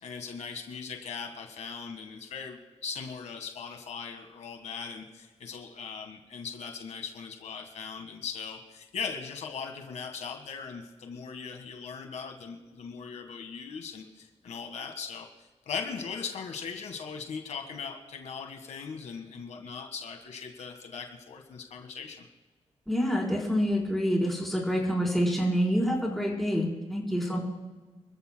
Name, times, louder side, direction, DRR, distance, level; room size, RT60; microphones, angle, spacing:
voice 1, 0.0-15.3 15.6-22.3 27.3-27.4, left 6 dB, 75° left, 4 dB, 1.7 m, -39 dB
voice 2, 22.9-27.4, equal, ahead, -4 dB, 4.2 m, -27 dB
29.0 x 14.0 x 2.3 m, 1.3 s
wide cardioid pair, 130°, 12 cm